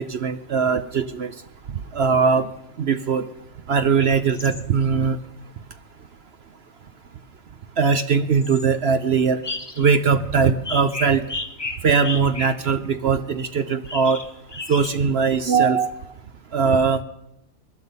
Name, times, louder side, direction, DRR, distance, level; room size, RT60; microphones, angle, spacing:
voice 1, 0.0-1.3 1.9-2.5 2.8-3.3 3.7-5.2 7.8-9.4 9.8-11.2 11.8-14.2 14.7-16.1 16.5-17.0, right 5 dB, 55° right, 10 dB, 0.9 m, -20 dB
sound 1, 4.0-4.6 8.4-8.7 9.4-10.2 10.6-12.9 13.8-15.0, left 3 dB, 20° left, 0.9 m, -33 dB
20.5 x 12.0 x 5.4 m, 0.87 s
omnidirectional pair, 1.4 m